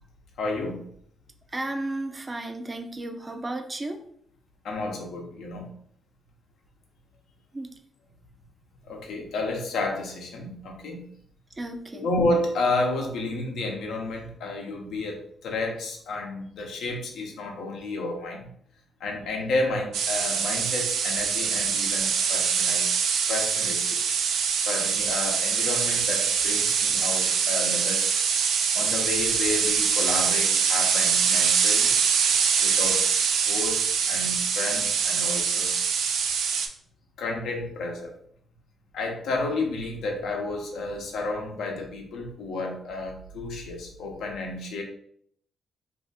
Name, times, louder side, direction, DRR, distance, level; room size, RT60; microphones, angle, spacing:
voice 1, 0.4-0.9 4.6-5.7 8.8-11.0 11.9-18.5 19.0-22.9 23.3-24.2 24.7-28.1 28.7-31.9 32.6-35.7 37.2-38.1 38.9-44.8, left 2 dB, 85° left, 1 dB, 0.8 m, -31 dB
voice 2, 1.5-4.0 7.5-7.7 11.6-12.1, right 2 dB, 25° right, 5 dB, 0.5 m, -33 dB
sound 1, 19.9-36.7, right 6 dB, 85° right, 0.4 m, -24 dB
2.7 x 2.5 x 4.0 m, 0.67 s
cardioid pair, 95°, 0 cm